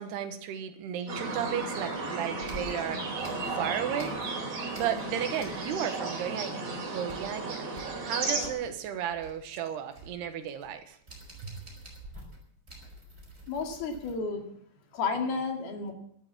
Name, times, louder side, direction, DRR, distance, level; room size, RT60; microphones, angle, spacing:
voice 1, 0.0-3.1 3.5-4.2 4.8-6.6 6.9-7.7 8.0-11.0 11.4-11.5, right 9 dB, 80° right, 8 dB, 3.5 m, -34 dB
sound 1, 1.1-8.5, right 3 dB, 40° right, 4.1 m, -34 dB
sound 2, 1.4-2.0 2.4-4.4 4.7-6.0 6.2-6.3 6.7-14.1, equal, 15° right, 4.7 m, -49 dB
voice 2, 13.5-14.5 14.9-15.9, left 4 dB, 70° left, 4 dB, 4.2 m, -32 dB
13.0 x 12.5 x 7.4 m, 0.67 s
omnidirectional pair, 4.7 m